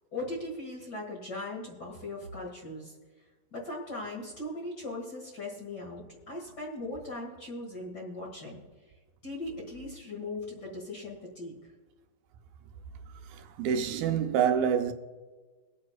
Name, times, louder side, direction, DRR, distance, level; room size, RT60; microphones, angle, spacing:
voice 1, 0.1-2.9 3.5-8.6 9.2-11.5, left 2 dB, 35° left, 1.9 m, -39 dB
voice 2, 13.3-14.9, right 8 dB, 85° right, 2.5 m, -27 dB
23.5 x 8.6 x 2.4 m
omnidirectional pair, 4.1 m